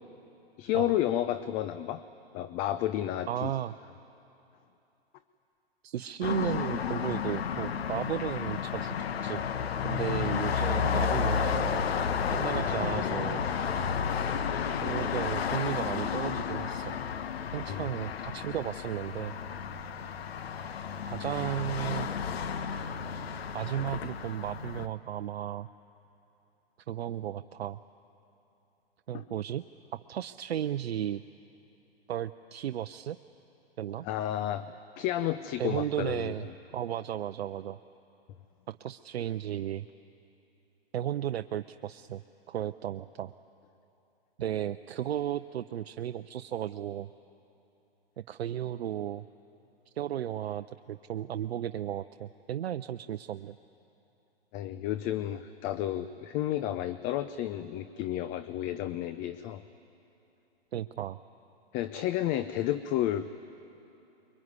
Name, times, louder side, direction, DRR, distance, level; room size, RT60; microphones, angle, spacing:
voice 1, 0.6-2.0 2.3-3.5 17.7-17.9 29.1-29.2 34.0-36.3 54.5-59.6 61.7-63.3, left 12 dB, 25° left, 13 dB, 0.5 m, -31 dB
voice 2, 3.3-3.7 5.8-9.4 9.8-11.9 12.3-13.5 14.8-17.0 17.5-19.3 21.1-22.1 23.5-25.7 26.9-27.8 29.1-29.6 29.9-31.2 32.1-33.2 33.8-34.1 35.6-36.5 36.7-37.8 38.7-39.9 40.9-42.2 42.5-43.3 44.4-47.1 48.3-49.2 49.9-53.6 60.7-61.2, right 11 dB, 80° right, 10 dB, 0.6 m, -34 dB
sound 1, 6.2-24.9, left 7 dB, 75° left, 1.2 m, -32 dB
23.5 x 23.0 x 9.7 m, 2.9 s
hypercardioid pair, 125°, 31 cm